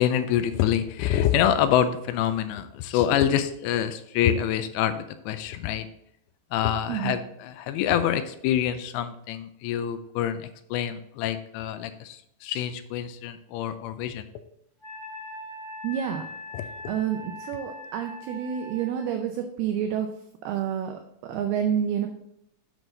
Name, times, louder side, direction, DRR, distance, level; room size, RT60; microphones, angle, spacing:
voice 1, 0.0-5.9 6.5-14.2 16.5-16.7, left 10 dB, 85° left, 10 dB, 2.7 m, -26 dB
Wind instrument woodwind instrument, 14.8-19.1, left 1 dB, 20° left, 2.9 m, -41 dB
voice 2, 15.8-16.3 16.9-20.1 20.4-22.1, right 9 dB, 80° right, 5 dB, 2.3 m, -29 dB
8.2 x 6.1 x 3.9 m, 0.76 s
omnidirectional pair, 5.2 m